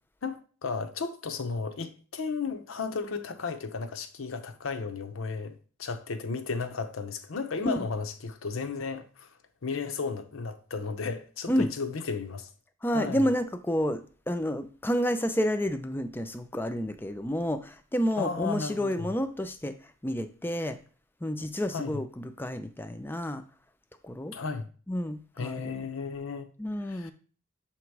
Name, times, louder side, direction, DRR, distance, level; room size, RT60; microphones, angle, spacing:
voice 1, 0.2-9.3 9.6-12.5 12.9-13.3 18.2-19.1 21.7-22.0 24.3-24.7 25.4-26.5 26.9-27.1, left 4 dB, 85° left, 0.7 m, -34 dB
voice 2, 12.8-19.7 20.0-20.8 21.2-23.4 24.0-24.3 24.9-25.9 26.6-27.1, equal, 10° left, 0.4 m, -30 dB
7.1 x 2.9 x 4.6 m
head